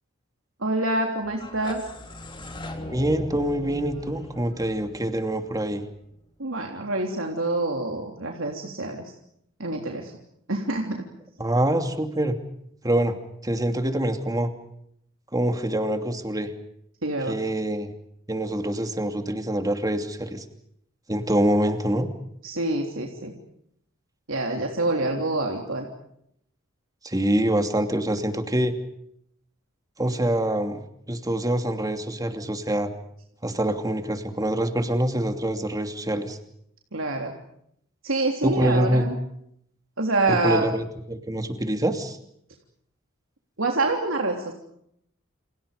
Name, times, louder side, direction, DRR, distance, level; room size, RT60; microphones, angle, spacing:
voice 1, 0.6-1.8 6.4-9.1 9.6-10.1 10.5-11.1 17.0-17.4 22.4-23.3 24.3-25.9 36.9-37.4 38.0-39.2 40.0-40.7 43.6-44.5, right 2 dB, 80° right, 2 dB, 3.4 m, -26 dB
sound 1, 1.2-6.1, left 1 dB, 25° left, 3.6 m, -39 dB
voice 2, 2.9-5.8 11.4-12.3 12.8-13.1 13.4-14.5 15.3-16.5 17.3-17.9 18.3-20.4 21.1-22.1 27.0-28.7 30.0-30.8 31.1-32.9 33.4-36.4 38.4-39.0 40.3-42.2, right 1 dB, 20° right, 6 dB, 2.8 m, -25 dB
29.5 x 28.5 x 5.2 m, 0.73 s
head